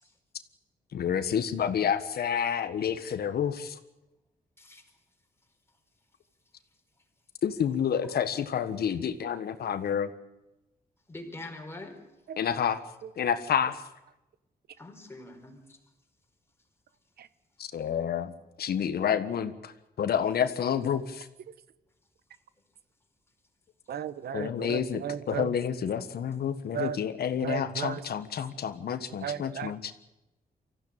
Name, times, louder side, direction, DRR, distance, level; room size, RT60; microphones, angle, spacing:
voice 1, 0.9-3.8 7.4-10.1 12.4-12.8 13.2-13.8 17.6-18.3 18.6-21.3 24.3-29.9, left 8 dB, 80° left, 10 dB, 1.6 m, -29 dB
voice 2, 11.1-12.0 14.8-15.8, left 2 dB, 15° left, 3 dB, 4.7 m, -43 dB
voice 3, 23.9-25.5 26.7-27.0 27.4-28.0 29.2-29.7, right 9 dB, 90° right, 15 dB, 1.1 m, -35 dB
25.0 x 15.5 x 9.0 m, 0.96 s
wide cardioid pair, 140°, 16 cm